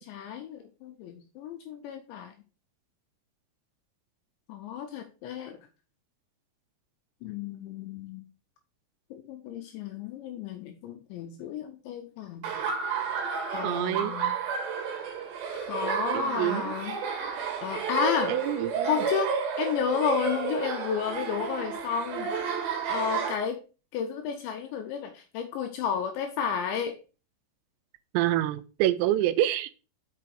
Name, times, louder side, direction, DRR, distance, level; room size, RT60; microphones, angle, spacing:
voice 1, 0.0-2.3 4.5-5.6 7.2-8.2 9.1-12.6 13.5-14.4 15.5-17.0 17.6-18.4 18.8-19.3 19.6-22.3 22.6-23.6 23.9-27.0, left 7 dB, 80° left, 5 dB, 2.7 m, -32 dB
Laughter, 12.4-23.3, right 6 dB, 60° right, 2.8 m, -31 dB
voice 2, 13.6-14.2 16.1-16.7 18.3-18.9 28.1-29.7, right 13 dB, 85° right, 13 dB, 3.2 m, -27 dB
6.6 x 5.9 x 4.7 m, 0.33 s
omnidirectional pair, 6.0 m